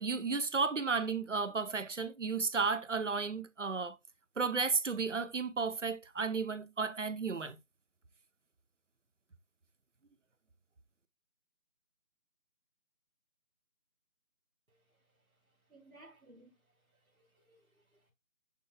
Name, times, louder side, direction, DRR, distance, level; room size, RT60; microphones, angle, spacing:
voice 1, 0.0-4.0 4.4-7.6, right 4 dB, 55° right, 0.8 m, -33 dB
voice 2, 15.7-16.6 16.9-18.1, right 2 dB, 70° right, 3.5 m, -61 dB
10.5 x 4.4 x 2.2 m
figure-of-eight pair, 170°, 43 cm